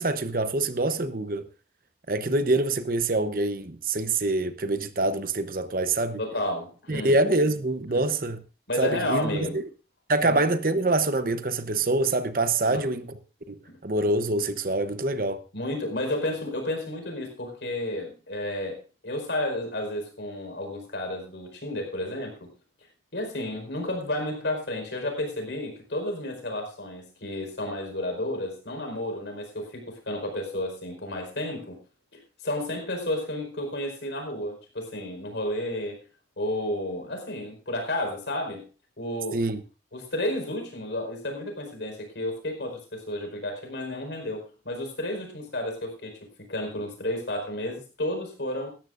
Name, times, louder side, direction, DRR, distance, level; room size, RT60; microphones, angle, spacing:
voice 1, 0.0-1.5 2.1-6.2 6.9-8.4 8.8-9.6 10.1-13.2 13.5-15.4 39.3-39.6, right 2 dB, 50° right, 0.9 m, -25 dB
voice 2, 6.2-7.1 7.9-8.0 8.7-9.6 10.2-10.4 12.6-12.9 13.7-13.8 15.5-22.5 23.1-31.8 32.1-36.0 36.4-38.6 39.0-39.4 39.9-48.7, left 1 dB, 90° left, 4.7 m, -32 dB
18.0 x 13.5 x 2.6 m
head